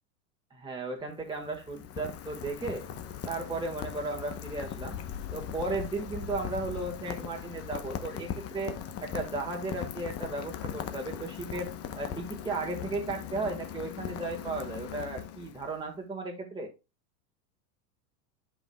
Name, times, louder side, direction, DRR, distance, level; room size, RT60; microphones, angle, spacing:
voice 1, 0.5-2.8 3.3-5.0 5.3-8.7 9.0-16.7, right 3 dB, 10° right, 1 dB, 1.7 m, -35 dB
Rain, 1.0-15.8, left 9 dB, 30° left, 0.9 m, -39 dB
12.0 x 5.3 x 2.3 m, 0.27 s
hypercardioid pair, 110°, 49 cm